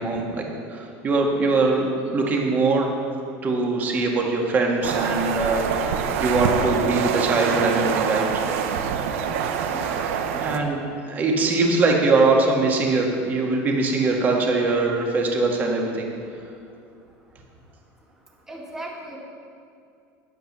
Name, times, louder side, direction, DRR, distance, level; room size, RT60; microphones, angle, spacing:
voice 1, 0.0-2.9 3.4-8.5 10.4-10.8 11.1-16.1, right 3 dB, 25° right, 0 dB, 1.9 m, -22 dB
sound 1, 4.8-10.6, right 7 dB, 85° right, 1.0 m, -25 dB
voice 2, 9.7-10.2 18.5-19.2, right 1 dB, 5° right, -3 dB, 2.1 m, -37 dB
10.0 x 9.3 x 6.8 m, 2.4 s
supercardioid pair, 155°, 7 cm